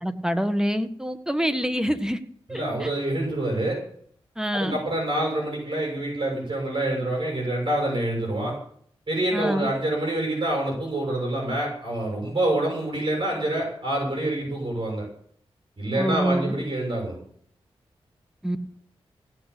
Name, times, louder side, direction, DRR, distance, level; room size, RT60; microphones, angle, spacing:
voice 1, 0.0-2.2 2.5-2.9 4.4-4.8 9.3-9.7 16.0-16.6 18.4-18.6, equal, 5° right, 9 dB, 1.5 m, -26 dB
voice 2, 2.5-3.8 4.5-8.6 9.1-15.0 15.8-17.2, right 1 dB, 50° right, -1 dB, 6.9 m, -26 dB
17.0 x 6.6 x 8.3 m, 0.62 s
cardioid pair, 50°, 11 cm